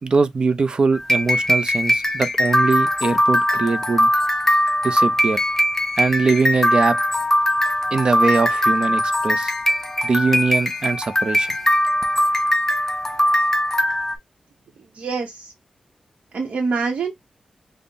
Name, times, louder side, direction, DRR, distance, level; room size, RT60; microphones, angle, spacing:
voice 1, 0.0-4.1 4.8-5.4 6.0-7.0 7.9-9.5 10.0-11.5, right 4 dB, 40° right, 0.4 m, -21 dB
sound 1, 0.9-14.2, equal, 15° left, 0.5 m, -20 dB
voice 2, 14.9-15.5 16.3-17.1, right 4 dB, 65° right, 0.8 m, -25 dB
5.2 x 2.0 x 2.6 m
wide cardioid pair, 150°, 2 cm